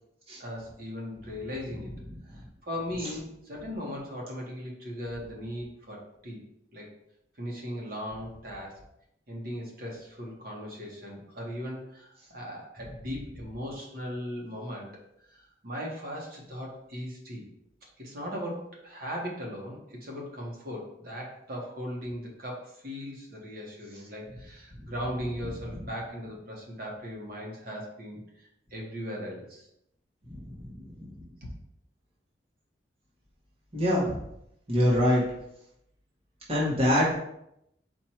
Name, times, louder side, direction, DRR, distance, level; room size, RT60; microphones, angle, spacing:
voice 1, 0.4-1.9 2.6-6.4 6.7-6.9 7.4-8.8 9.3-14.9 15.3-17.5 18.0-29.7 31.4-31.5, equal, 55° right, -2 dB, 1.2 m, -38 dB
voice 2, 33.7-34.2 34.7-35.2 36.5-37.2, equal, 35° right, -6 dB, 1.0 m, -24 dB
4.5 x 2.6 x 4.3 m, 0.79 s
head